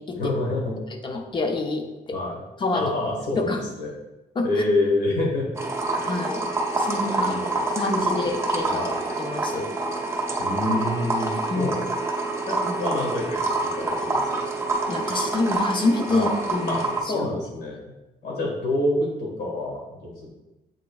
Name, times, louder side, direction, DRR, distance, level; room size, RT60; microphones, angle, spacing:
voice 1, 0.1-0.7 2.1-2.4 2.7-3.9 4.4-5.5 6.9-7.7 8.1-8.3 8.7-8.9 10.4-11.8 12.5-13.4 13.7-14.5 16.1-16.3 16.7-16.8 17.1-17.8 18.2-20.3, left 1 dB, 80° left, -2 dB, 1.5 m, -27 dB
voice 2, 0.9-2.2 2.6-2.9 3.4-3.6 4.4-4.5 6.0-6.4 6.8-7.4 7.8-8.8 9.2-9.7 11.5-11.7 14.9-17.3, left 3 dB, 30° left, 4 dB, 0.5 m, -27 dB
sound 1, 5.6-17.0, right 2 dB, 15° right, 0.6 m, -27 dB
7.6 x 3.0 x 2.3 m, 1.0 s
cardioid pair, 165°, 16 cm